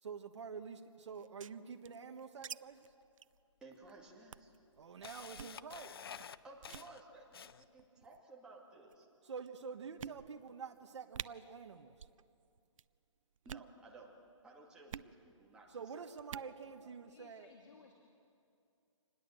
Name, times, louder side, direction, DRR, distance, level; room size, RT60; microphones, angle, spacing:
voice 1, 0.0-2.9 4.8-6.0 9.2-12.1 15.7-17.5, right 6 dB, 60° right, 4 dB, 1.3 m, -47 dB
sound 1, 1.1-2.6 2.8-2.9 3.2-3.4 3.7-3.9 4.3-4.6 5.3-5.6 6.2-6.4 6.6-6.9 7.8-8.2 8.9-9.0 9.5-9.6 10.0-10.5 10.8-10.9 11.1-11.3 11.9-12.2 12.5-12.9 13.4-13.7 14.9-15.1 16.2-16.5, right 7 dB, 80° right, 0.5 m, -47 dB
Camera, 2.9-3.0 3.8-3.9 4.4-7.8, left 7 dB, 45° left, 0.6 m, -50 dB
voice 2, 3.6-4.5 6.4-9.1 13.4-14.1 14.4-15.7 15.9-16.0 16.4-16.9, right 2 dB, 5° right, -4 dB, 2.2 m, -57 dB
voice 3, 17.1-17.9, left 5 dB, 65° left, 2 dB, 2.8 m, -60 dB
26.5 x 20.5 x 7.7 m, 2.5 s
hypercardioid pair, 170°, 17 cm